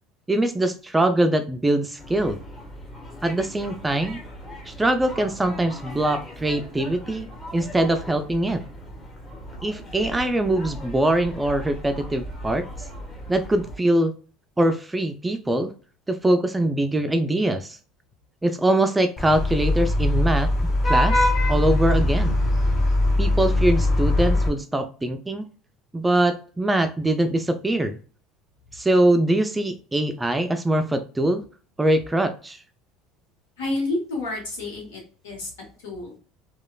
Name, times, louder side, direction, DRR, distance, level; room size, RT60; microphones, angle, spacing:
voice 1, 0.3-2.4 3.2-4.2 4.7-7.3 7.5-8.6 9.6-12.7 13.3-14.1 14.6-15.7 16.1-17.8 18.4-20.5 20.8-22.4 23.2-25.5 25.9-28.0 28.7-31.4 31.8-32.6, right 1 dB, 15° right, 8 dB, 0.3 m, -23 dB
sound 1, 2.0-13.8, equal, 25° left, 1.2 m, -39 dB
Vehicle horn car horn honking / Traffic noise roadway noise, 19.2-24.5, left 1 dB, 45° left, 0.8 m, -21 dB
voice 2, 33.6-35.5 35.8-36.1, left 2 dB, 80° left, -2 dB, 1.0 m, -29 dB
2.9 x 2.2 x 2.2 m, 0.39 s
hypercardioid pair, 75°, 0 cm